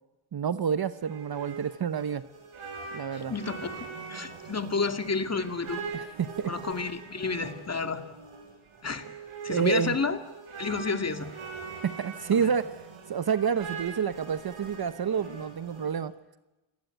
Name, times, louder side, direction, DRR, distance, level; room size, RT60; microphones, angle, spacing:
voice 1, 0.3-2.2 2.9-3.3 5.9-6.5 9.5-10.0 11.8-12.7 13.1-16.1, right 7 dB, 50° right, 13 dB, 1.0 m, -28 dB
sound 1, 0.7-16.0, right 5 dB, 85° right, 7.4 m, -42 dB
voice 2, 3.1-5.8 6.5-8.0 8.8-9.1 9.4-10.2 10.6-11.3 12.3-12.5, left 4 dB, 30° left, 7 dB, 2.4 m, -31 dB
29.0 x 19.0 x 9.2 m, 1.1 s
wide cardioid pair, 115°, 48 cm